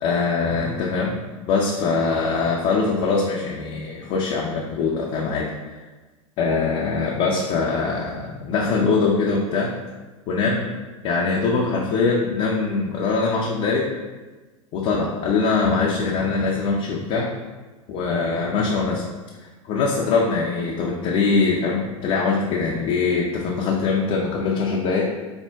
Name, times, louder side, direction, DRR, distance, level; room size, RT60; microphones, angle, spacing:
voice 1, 0.0-1.2 1.5-5.5 6.4-9.7 10.3-10.7 11.0-13.9 14.7-17.3 17.9-19.0 19.4-25.0, left 4 dB, 35° left, -3 dB, 0.5 m, -22 dB
4.4 x 2.1 x 3.4 m, 1.2 s
hypercardioid pair, 95°, 17 cm